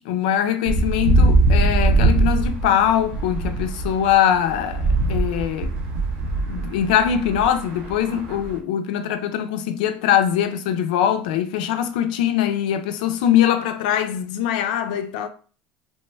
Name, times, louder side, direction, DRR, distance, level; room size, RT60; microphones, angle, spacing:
voice 1, 0.1-4.8 5.1-5.7 6.5-15.3, left 10 dB, 80° left, 0.4 m, -22 dB
sound 1, 0.7-8.6, right 2 dB, 70° right, 0.8 m, -21 dB
2.9 x 2.1 x 3.2 m
supercardioid pair, 100°, 5 cm